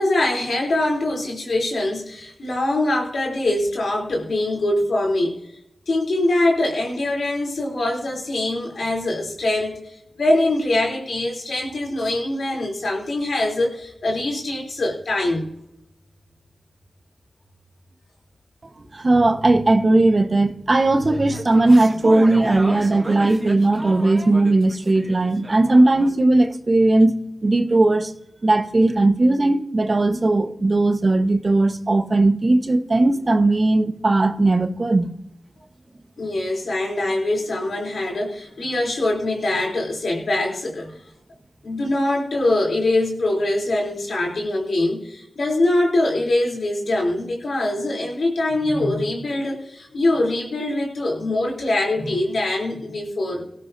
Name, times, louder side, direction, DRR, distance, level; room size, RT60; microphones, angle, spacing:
voice 1, 0.0-5.4 5.9-15.5 36.2-41.0 41.6-53.4, left 2 dB, 70° left, 3.5 m, -23 dB
voice 2, 18.9-27.1 27.4-28.1 28.4-35.1, right 2 dB, 45° right, 1.2 m, -18 dB
sound 1, 20.8-26.1, right 1 dB, 20° right, 2.4 m, -33 dB
17.5 x 13.5 x 2.8 m
cardioid pair, 45°, 0 cm